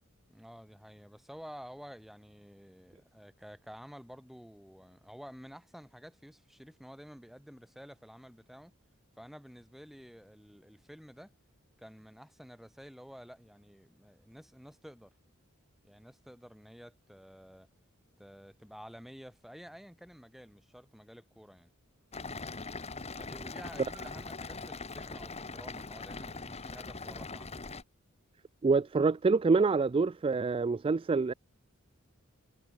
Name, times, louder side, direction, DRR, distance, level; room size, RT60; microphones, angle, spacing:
voice 1, 0.3-8.7 9.2-11.3 11.8-15.1 15.8-17.7 18.2-21.7 23.2-27.6, equal, ahead, 7.9 m, -51 dB
sound 1, 22.1-27.8, left 3 dB, 30° left, 1.8 m, -42 dB
voice 2, 28.6-31.3, right 4 dB, 25° right, 0.3 m, -26 dB
head